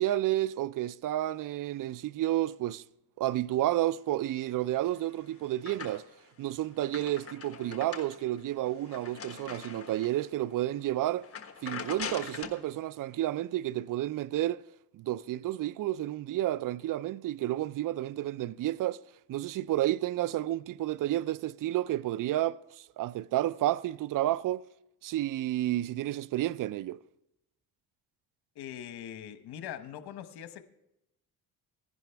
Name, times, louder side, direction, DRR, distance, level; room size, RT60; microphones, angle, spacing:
voice 1, 0.0-2.8 3.2-6.0 6.4-11.3 11.6-14.6 14.9-19.0 19.3-24.6 25.0-27.0, right 14 dB, 55° right, 0.5 m, -31 dB
sound 1, 4.7-6.3 6.6-10.3 10.7-10.9 11.2-12.7, left 6 dB, 35° left, 1.3 m, -42 dB
voice 2, 28.5-30.6, left 10 dB, 75° left, 1.0 m, -42 dB
15.5 x 10.5 x 3.4 m
cardioid pair, 75°, 39 cm